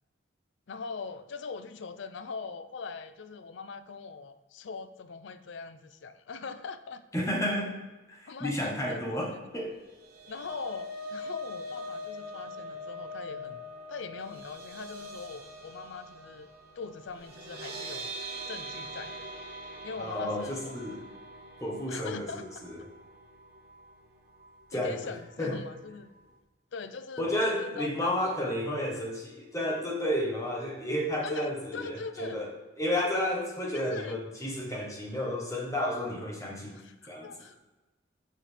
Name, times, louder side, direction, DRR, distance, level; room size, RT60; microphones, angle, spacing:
voice 1, 0.7-7.1 8.3-9.1 9.3-9.4 10.3-13.6 13.9-16.5 16.8-18.1 18.5-19.3 19.8-20.7 21.9-22.4 24.7-26.1 26.7-28.1 31.2-32.4 33.0-33.1 33.7-34.2 36.7-37.5, left 4 dB, 75° left, 12 dB, 0.5 m, -41 dB
voice 2, 7.1-7.8 8.1-9.8 20.0-21.0 21.6-22.8 24.7-25.1 25.4-25.6 27.2-32.5 32.8-36.7 37.1-37.3, left 1 dB, 15° left, -2 dB, 1.1 m, -32 dB
sound 1, 9.8-24.1 24.4-24.6 24.9-25.1, equal, 50° right, 1.2 m, -43 dB
7.5 x 5.7 x 3.4 m, 1.2 s
head